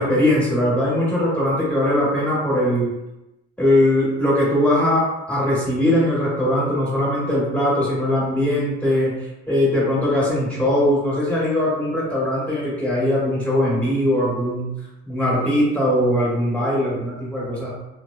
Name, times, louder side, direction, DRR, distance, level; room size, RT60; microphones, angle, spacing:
voice 1, 0.0-2.9 3.6-9.1 9.5-14.7 15.1-17.7, left 1 dB, 5° left, -7 dB, 1.3 m, -20 dB
2.9 x 2.1 x 2.4 m, 0.95 s
cardioid pair, 90°, 30 cm